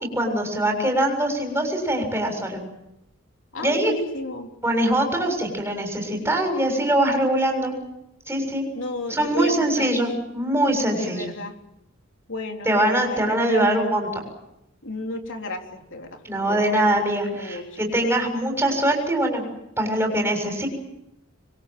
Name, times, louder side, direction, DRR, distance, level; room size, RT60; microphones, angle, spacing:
voice 1, 0.1-2.6 3.6-3.9 4.6-7.8 8.3-8.6 9.1-11.3 12.7-14.2 16.2-19.4 19.8-20.7, right 1 dB, 10° right, 3 dB, 7.1 m, -23 dB
voice 2, 3.5-4.5 8.7-10.0 10.9-11.6 12.3-13.8 14.8-16.2 16.5-16.6 16.9-17.0 17.3-17.8, left 2 dB, 65° left, 3 dB, 3.6 m, -33 dB
26.0 x 23.0 x 7.7 m, 0.87 s
head